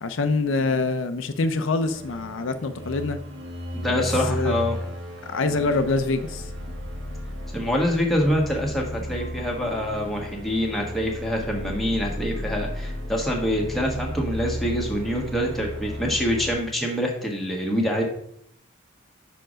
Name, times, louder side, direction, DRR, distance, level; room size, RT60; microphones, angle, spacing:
voice 1, 0.0-3.2 3.9-4.6 5.3-6.5, left 3 dB, 80° left, 9 dB, 0.5 m, -25 dB
sound 1, 1.9-16.5, equal, 70° right, 1.1 m, -34 dB
voice 2, 3.7-4.8 7.5-18.0, equal, ahead, -1 dB, 1.3 m, -25 dB
5.2 x 4.5 x 6.2 m, 0.69 s
head